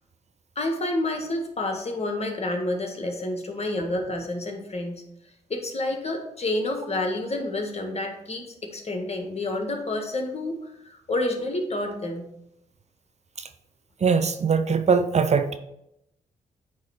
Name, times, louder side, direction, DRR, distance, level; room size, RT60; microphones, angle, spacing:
voice 1, 0.6-5.0 5.5-10.6 10.9-12.2, left 2 dB, 40° left, 3 dB, 1.6 m, -29 dB
voice 2, 14.0-15.6, right 5 dB, 40° right, 8 dB, 0.6 m, -21 dB
9.3 x 3.1 x 4.4 m, 0.82 s
hypercardioid pair, 40°, 17 cm